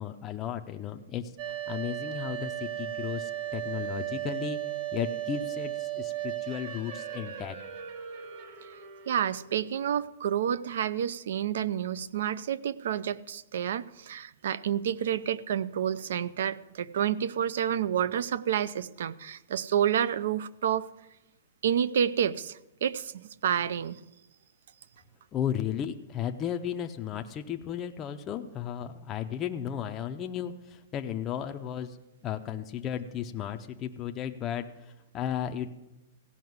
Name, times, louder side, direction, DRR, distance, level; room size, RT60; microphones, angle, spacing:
voice 1, 0.0-4.6 4.9-7.6 25.3-32.0 32.2-35.7, left 9 dB, 20° left, 5 dB, 0.5 m, -34 dB
sound 1, 1.4-9.9, right 12 dB, 40° right, 1.5 m, -36 dB
voice 2, 9.1-20.9 21.6-24.0, right 9 dB, 65° right, 18 dB, 0.5 m, -29 dB
15.5 x 5.7 x 9.4 m, 0.94 s
hypercardioid pair, 170°, 0 cm